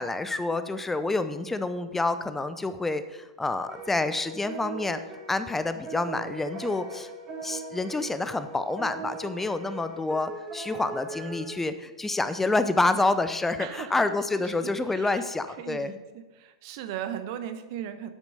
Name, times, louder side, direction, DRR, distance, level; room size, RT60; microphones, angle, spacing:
voice 1, 0.0-5.0 5.3-7.1 7.4-15.9, left 2 dB, 10° left, 11 dB, 0.7 m, -28 dB
sound 1, 3.7-11.6, right 3 dB, 25° right, 1.7 m, -40 dB
voice 2, 13.6-14.1 14.4-15.3 15.6-18.1, right 10 dB, 50° right, 10 dB, 1.0 m, -38 dB
9.4 x 8.3 x 5.5 m, 1.2 s
figure-of-eight pair, 95°, 3 cm